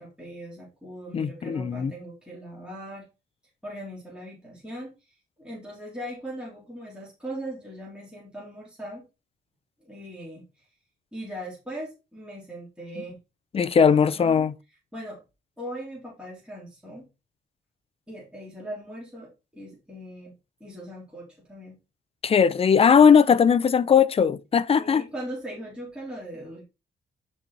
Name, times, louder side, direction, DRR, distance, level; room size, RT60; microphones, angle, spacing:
voice 1, 0.0-3.0 3.6-9.0 9.8-10.6 11.1-13.2 13.6-14.4 14.9-15.2 15.6-17.0 18.1-20.3 20.6-21.8 24.7-26.6, right 1 dB, 5° right, 3.1 m, -39 dB
voice 2, 1.1-1.9 13.0-13.1 13.5-14.5 22.2-25.0, left 6 dB, 30° left, 0.5 m, -19 dB
10.0 x 4.2 x 4.5 m
cardioid pair, 135°, 19 cm